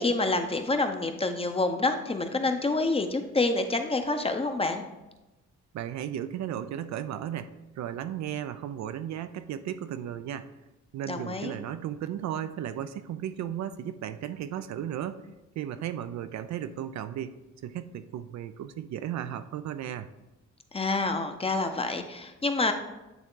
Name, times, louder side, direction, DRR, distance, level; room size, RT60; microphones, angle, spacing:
voice 1, 0.0-4.8 11.1-11.6 20.7-22.7, left 3 dB, 20° left, 7 dB, 0.7 m, -27 dB
voice 2, 5.7-10.5 10.9-15.2 15.6-17.3 17.6-20.1, right 10 dB, 65° right, 11 dB, 0.5 m, -35 dB
9.1 x 3.5 x 3.8 m, 1.0 s
cardioid pair, 90°, 30 cm